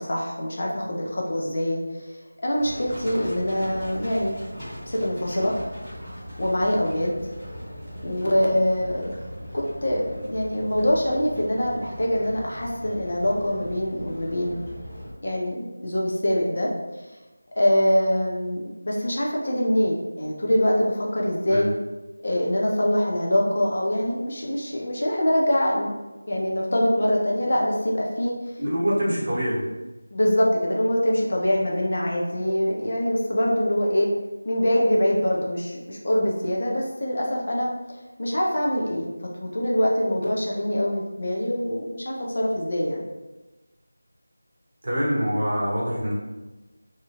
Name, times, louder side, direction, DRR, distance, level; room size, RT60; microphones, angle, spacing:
voice 1, 0.0-4.4 4.9-5.5 6.4-7.1 8.0-9.1 9.5-14.6 15.2-16.7 17.6-21.7 22.2-25.9 26.3-28.3 30.1-34.1 34.4-37.7 38.2-43.0, equal, 50° left, -2 dB, 0.5 m, -24 dB
Livestock farm animals working animals, 2.6-15.1, equal, 15° left, 1.0 m, -39 dB
voice 2, 28.6-29.6 44.8-46.1, equal, 40° right, -6 dB, 0.8 m, -25 dB
2.7 x 2.3 x 2.8 m, 1.1 s
figure-of-eight pair, 170°, 0 cm